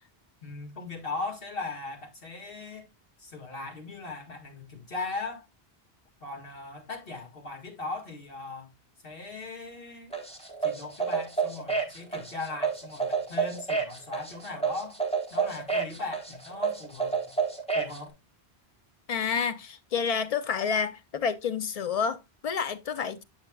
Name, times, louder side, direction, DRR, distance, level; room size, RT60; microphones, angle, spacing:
voice 1, 0.4-2.9 3.2-5.5 6.2-8.7 9.0-10.2 10.6-15.0 15.3-17.4 17.7-18.1, left 3 dB, 60° left, 2.2 m, -38 dB
sound 1, 10.1-18.0, right 5 dB, 5° left, 1.1 m, -29 dB
voice 2, 19.1-23.2, left 6 dB, 45° left, 0.6 m, -29 dB
8.0 x 6.9 x 2.3 m
omnidirectional pair, 1.1 m